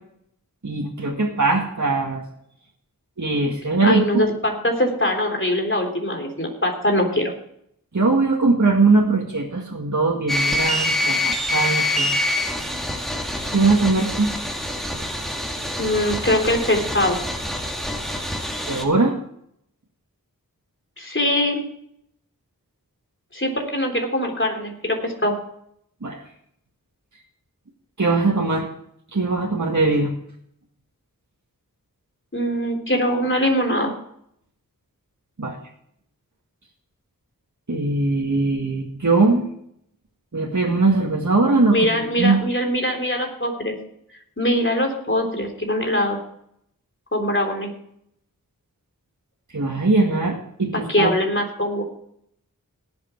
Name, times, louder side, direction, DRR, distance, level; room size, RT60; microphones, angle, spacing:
voice 1, 0.6-2.2 3.2-4.2 7.9-12.1 13.5-14.3 18.7-19.2 26.0-26.2 28.0-28.7 29.1-30.1 35.4-35.6 37.7-39.5 40.3-41.9 42.2-42.4 49.5-51.1, right 3 dB, 55° right, -1 dB, 1.9 m, -20 dB
voice 2, 3.8-7.3 15.8-17.2 21.0-21.6 23.3-25.4 32.3-33.9 41.7-43.8 44.4-46.2 47.1-47.7 50.7-51.8, left 1 dB, 35° left, 2 dB, 3.6 m, -22 dB
sound 1, 10.3-18.8, left 1 dB, ahead, 2.5 m, -25 dB
18.5 x 8.1 x 4.6 m, 0.70 s
wide cardioid pair, 50°, 35 cm